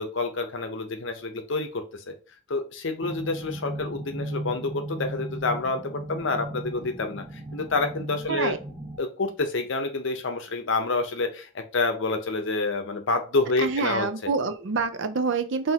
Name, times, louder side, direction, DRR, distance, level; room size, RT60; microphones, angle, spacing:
voice 1, 0.0-2.1 2.5-14.3, left 3 dB, 60° left, 6 dB, 0.7 m, -28 dB
sound 1, 3.0-9.0, right 1 dB, 5° right, 1.5 m, -36 dB
voice 2, 13.6-15.7, right 4 dB, 60° right, 10 dB, 0.5 m, -26 dB
5.8 x 2.7 x 2.8 m, 0.37 s
head